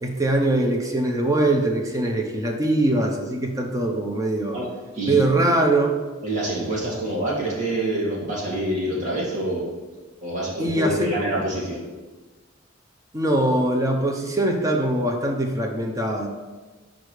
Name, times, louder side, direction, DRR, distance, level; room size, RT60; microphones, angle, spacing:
voice 1, 0.0-4.6 5.0-6.0 10.6-11.1 13.1-16.3, right 2 dB, 15° right, 1 dB, 0.8 m, -22 dB
voice 2, 6.2-9.6 10.2-11.8, right 1 dB, 35° right, -5 dB, 2.2 m, -26 dB
5.1 x 5.1 x 6.4 m, 1.3 s
head